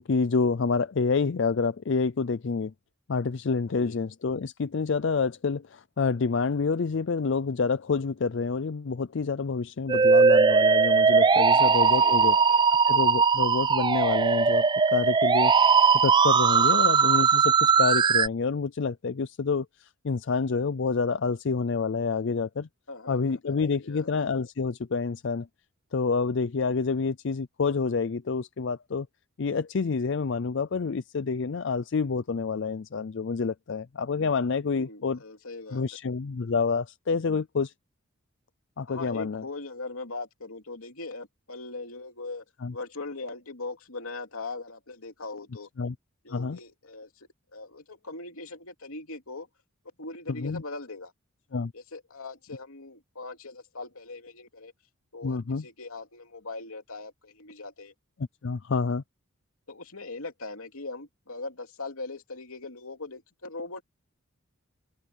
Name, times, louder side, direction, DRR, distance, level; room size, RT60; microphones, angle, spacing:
voice 1, 0.0-2.7 3.1-12.3 12.9-15.5 15.9-22.7 23.1-25.5 25.9-29.1 29.4-35.2 35.7-37.7 38.8-39.4 42.6-42.7 45.8-45.9 46.3-46.6 50.3-50.6 51.5-51.7 55.2-55.6 58.4-59.0, left 4 dB, 55° left, 0.5 m, -28 dB
Musical instrument, 9.9-18.3, right 5 dB, 20° right, 0.3 m, -20 dB
voice 2, 11.5-12.6 16.5-16.8 22.9-23.6 23.8-24.1 34.7-35.9 38.9-42.4 42.7-45.7 46.2-49.5 50.0-51.1 51.7-54.7 55.1-57.9 59.7-63.8, left 3 dB, 80° left, 3.0 m, -40 dB
head